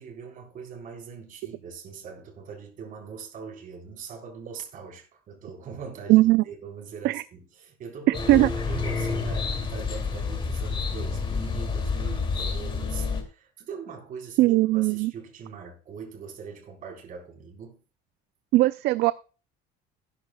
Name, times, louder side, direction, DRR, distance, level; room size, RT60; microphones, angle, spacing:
voice 1, 0.0-17.8, right 6 dB, 45° right, 4.1 m, -42 dB
voice 2, 6.1-6.4 7.0-7.2 8.3-8.5 14.4-15.1 18.5-19.1, right 18 dB, 60° right, 0.4 m, -19 dB
sound 1, 8.1-13.2, left 4 dB, 25° left, 2.5 m, -29 dB
18.0 x 10.0 x 2.3 m
cardioid pair, 150°, 20 cm